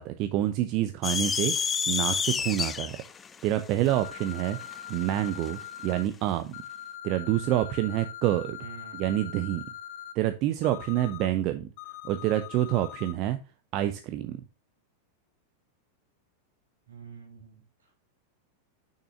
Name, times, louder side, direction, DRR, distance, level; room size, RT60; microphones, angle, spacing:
voice 1, 0.0-3.0 3.4-4.6 4.9-6.6 7.0-8.6 9.0-9.6 10.2-11.7 12.0-13.4 13.7-14.4, right 13 dB, 40° right, 9 dB, 0.6 m, -27 dB
sound 1, 1.0-5.5, left 6 dB, 20° left, 0.5 m, -30 dB
sound 2, 3.9-6.0 6.5-10.1 10.6-11.3 11.8-13.1, left 11 dB, 50° left, 0.9 m, -42 dB
voice 2, 8.6-9.3 16.9-18.1, right 6 dB, 70° right, 1 dB, 3.1 m, -48 dB
6.6 x 6.1 x 2.6 m, 0.31 s
figure-of-eight pair, 90°, 0 cm